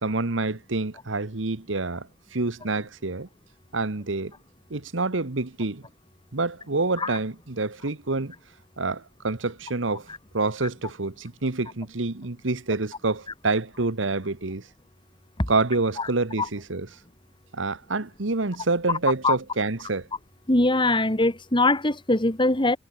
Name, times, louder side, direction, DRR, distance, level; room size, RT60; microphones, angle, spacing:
voice 1, 0.0-3.3 3.7-4.3 4.7-5.8 6.3-8.3 8.8-10.1 10.3-14.6 15.5-16.9 17.5-20.1, right 3 dB, 80° right, 1.4 m, -27 dB
voice 2, 20.5-22.8, left 2 dB, 25° left, 2.8 m, -22 dB
head